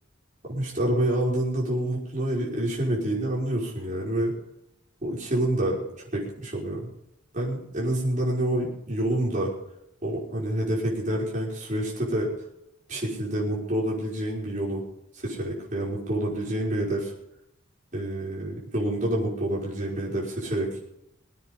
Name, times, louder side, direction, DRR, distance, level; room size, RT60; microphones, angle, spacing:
voice 1, 0.5-4.3 5.0-5.9 6.1-6.9 7.3-9.5 10.0-12.3 12.9-14.8 15.2-17.1 17.9-20.7, right 1 dB, 40° right, -4 dB, 5.6 m, -27 dB
23.0 x 9.3 x 5.5 m, 0.79 s
head